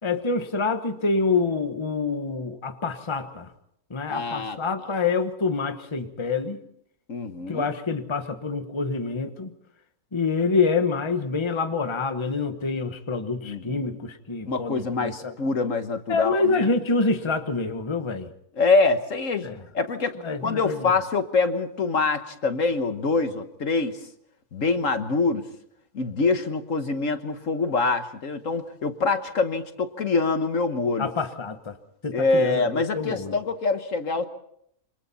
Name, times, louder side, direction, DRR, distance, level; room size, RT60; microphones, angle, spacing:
voice 1, 0.0-3.5 3.9-6.6 7.5-9.5 10.1-15.3 16.1-18.3 19.4-19.6 20.2-20.9 31.0-31.8 32.0-33.4, left 4 dB, 20° left, 8 dB, 1.2 m, -26 dB
voice 2, 4.1-4.6 7.1-7.7 13.4-13.9 14.5-16.7 18.6-19.5 19.7-20.1 20.4-24.0 24.5-25.5 25.9-31.1 32.1-34.3, left 3 dB, 60° left, 8 dB, 1.6 m, -25 dB
27.0 x 25.5 x 4.2 m, 0.70 s
omnidirectional pair, 1.6 m